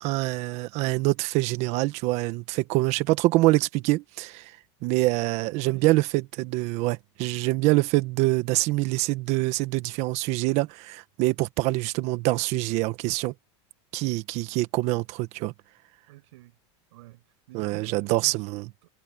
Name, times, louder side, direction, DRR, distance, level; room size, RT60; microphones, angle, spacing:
voice 1, 0.0-4.5 4.8-13.3 13.9-15.5 17.5-18.7, right 20 dB, 50° right, 1.5 m, -25 dB
voice 2, 5.5-6.0 16.1-16.5 16.9-18.4 18.8-18.9, right 19 dB, 75° right, 7.4 m, -48 dB
supercardioid pair, 150°, 15 cm